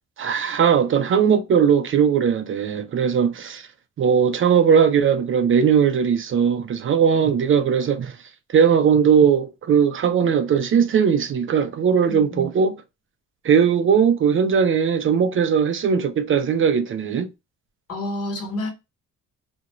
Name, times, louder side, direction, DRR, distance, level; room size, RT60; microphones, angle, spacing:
voice 1, 0.2-3.7 4.0-8.1 8.5-12.8 13.4-17.3, right 7 dB, 45° right, 0.4 m, -19 dB
voice 2, 12.1-12.5 17.9-18.7, left 1 dB, 50° left, 1.0 m, -29 dB
2.4 x 2.1 x 2.9 m
cardioid pair, 90°, 30 cm